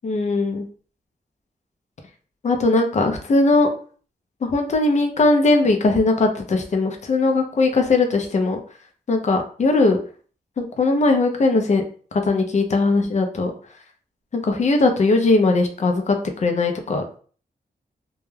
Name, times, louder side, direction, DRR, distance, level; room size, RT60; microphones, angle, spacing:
voice 1, 0.0-0.6 2.4-3.7 4.4-8.6 9.1-10.0 10.6-11.8 12.1-13.5 14.3-17.1, left 3 dB, 45° left, 5 dB, 0.5 m, -19 dB
2.2 x 2.1 x 3.2 m, 0.42 s
wide cardioid pair, 95°, 16 cm